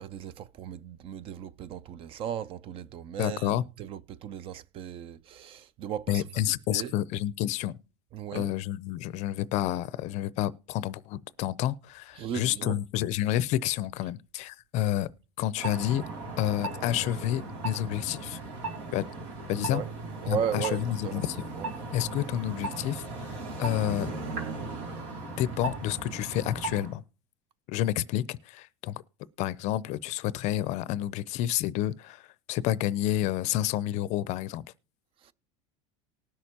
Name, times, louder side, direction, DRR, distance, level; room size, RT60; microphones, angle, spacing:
voice 1, 0.0-7.0 8.1-8.5 12.2-12.8 19.6-19.9 20.2-21.2 21.6-21.7 35.2-35.3, right 9 dB, 35° right, 0.4 m, -36 dB
voice 2, 3.2-3.6 6.1-7.8 8.3-15.1 15.4-16.0 16.4-18.4 18.9-19.0 19.5-19.8 20.3-21.4 21.9-23.0 23.6-24.1 25.4-27.0 27.7-29.0 29.4-32.2 32.5-34.6, left 13 dB, 45° left, 0.5 m, -29 dB
sound 1, 15.6-26.9, right 3 dB, 80° right, 2.7 m, -37 dB
19.0 x 6.4 x 2.8 m
supercardioid pair, 140°, 16 cm